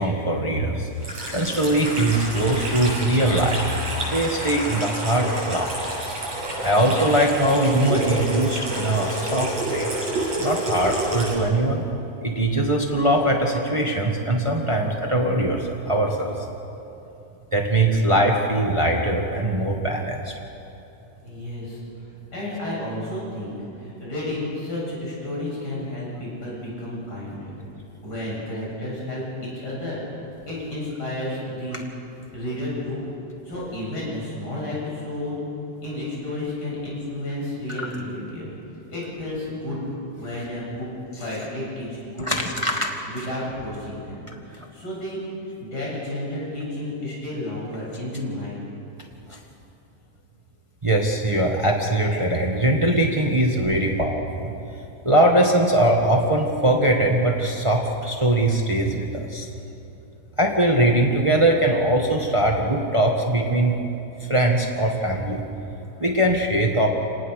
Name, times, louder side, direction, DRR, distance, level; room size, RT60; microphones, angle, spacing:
voice 1, 0.0-3.7 4.1-5.9 6.6-9.9 10.4-11.8 12.2-16.3 17.5-20.3 42.2-42.9 49.3-49.4 50.8-54.5 55.0-59.5 60.4-63.7 64.2-65.4 66.0-66.9, right 1 dB, 35° right, 1 dB, 0.5 m, -21 dB
Water tap faucet / Sink (filling or washing), 1.0-11.3, right 1 dB, 50° right, 8.8 m, -29 dB
voice 2, 21.2-22.0 22.3-27.6 28.0-30.0 30.5-31.8 32.3-33.1 33.4-35.4 35.8-38.5 38.9-39.8 40.1-40.9 41.2-42.6 43.1-45.2 45.4-48.6, left 1 dB, 30° left, -5 dB, 8.1 m, -32 dB
28.0 x 19.0 x 6.6 m, 2.9 s
omnidirectional pair, 3.8 m